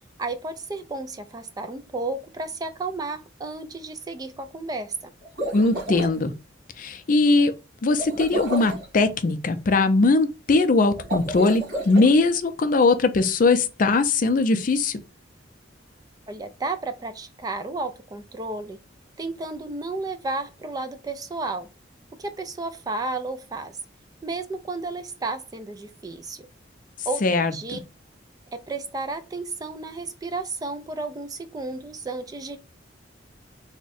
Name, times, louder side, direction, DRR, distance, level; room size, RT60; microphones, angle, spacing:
voice 1, 0.2-5.1 16.3-18.8 19.2-21.7 22.1-23.8 24.2-26.4 27.1-27.8 28.5-32.6, right 3 dB, 20° right, 0.3 m, -32 dB
sound 1, 5.2-6.1 8.0-8.9 11.0-12.1, right 1 dB, 50° right, 1.7 m, -30 dB
voice 2, 5.5-6.3 6.8-7.5 7.8-15.0 27.2-27.8, left 3 dB, 45° left, 0.4 m, -20 dB
3.5 x 2.1 x 4.0 m
head